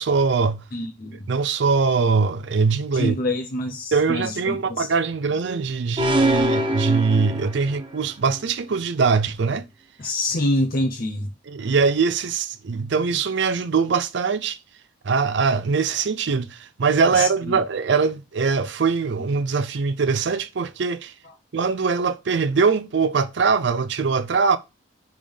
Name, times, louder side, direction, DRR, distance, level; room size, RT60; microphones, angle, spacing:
voice 1, 0.0-0.6 1.3-3.2 3.9-9.7 11.5-14.6 15.0-21.1 21.5-24.6, right 5 dB, 60° right, 0.4 m, -22 dB
voice 2, 0.7-1.3 2.9-4.9 10.0-11.3 17.1-17.6, left 1 dB, 45° left, 0.7 m, -26 dB
sound 1, 6.0-8.0, right 1 dB, 25° right, 0.7 m, -23 dB
5.1 x 3.7 x 5.3 m
head